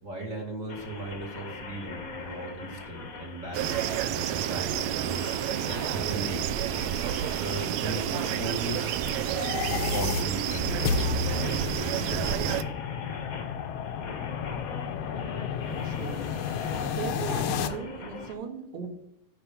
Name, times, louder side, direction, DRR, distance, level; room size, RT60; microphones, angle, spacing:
voice 1, 0.0-5.5 5.9-6.4 7.4-9.0 9.6-10.7 11.1-12.5, right 2 dB, 30° right, 0 dB, 2.0 m, -37 dB
sound 1, 0.7-18.3, left 4 dB, 55° left, 0.9 m, -42 dB
sound 2, 3.5-12.6, right 11 dB, 80° right, 1.6 m, -30 dB
sound 3, 9.2-17.7, left 7 dB, 80° left, 1.4 m, -32 dB
voice 2, 15.8-16.2 16.9-18.9, right 5 dB, 45° right, 2 dB, 2.3 m, -37 dB
10.5 x 4.6 x 6.9 m, 0.78 s
omnidirectional pair, 3.7 m